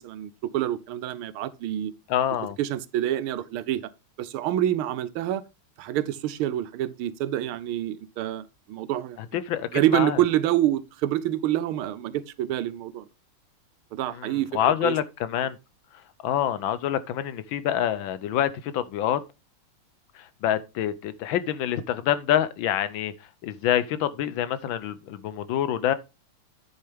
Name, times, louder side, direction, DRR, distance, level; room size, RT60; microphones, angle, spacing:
voice 1, 0.0-1.9 2.6-3.8 4.2-5.4 5.8-9.2 9.7-13.1 13.9-14.5 14.8-15.0, right 13 dB, 80° right, 1.5 m, -27 dB
voice 2, 2.1-2.6 9.5-10.2 14.1-15.6 16.2-19.2 20.1-23.1 23.4-25.9, left 10 dB, 70° left, 1.4 m, -26 dB
10.0 x 6.6 x 3.5 m
omnidirectional pair, 2.3 m